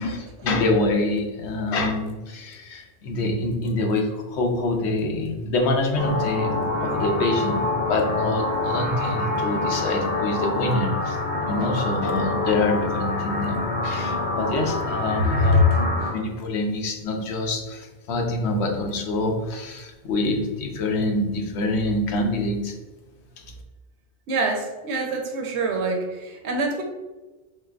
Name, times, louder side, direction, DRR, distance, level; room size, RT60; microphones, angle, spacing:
voice 1, 0.0-11.2 11.5-15.6 16.1-22.7 23.4-23.5, left 2 dB, 85° left, 3 dB, 0.9 m, -26 dB
sound 1, 6.0-16.1, left 2 dB, 60° left, 1.2 m, -26 dB
voice 2, 15.2-15.7 16.0-16.1 24.3-26.8, equal, 85° right, 2 dB, 0.9 m, -24 dB
3.9 x 3.3 x 2.4 m, 1.2 s
omnidirectional pair, 1.1 m